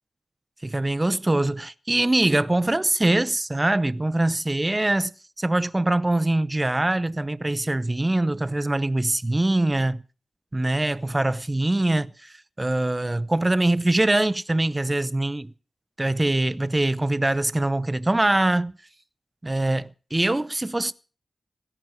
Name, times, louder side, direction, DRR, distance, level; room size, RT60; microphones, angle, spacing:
voice 1, 0.6-5.1 5.4-10.0 10.5-15.5 16.0-18.7 19.4-20.9, right 2 dB, 20° right, 0.7 m, -23 dB
17.0 x 12.0 x 6.2 m
wide cardioid pair, 70°, 0 cm